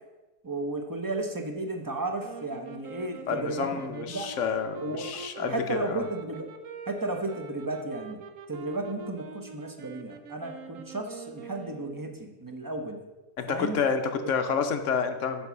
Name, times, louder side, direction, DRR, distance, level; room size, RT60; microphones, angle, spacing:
voice 1, 0.4-4.3 4.8-6.5 6.9-8.2 8.5-13.0 13.5-13.8, right 2 dB, 20° right, 4 dB, 0.5 m, -34 dB
sound 1, 2.2-12.2, right 4 dB, 60° right, 1.1 m, -44 dB
voice 2, 3.3-6.0 13.4-15.5, left 6 dB, 55° left, 6 dB, 1.0 m, -29 dB
9.8 x 4.5 x 6.8 m, 1.1 s
omnidirectional pair, 1.7 m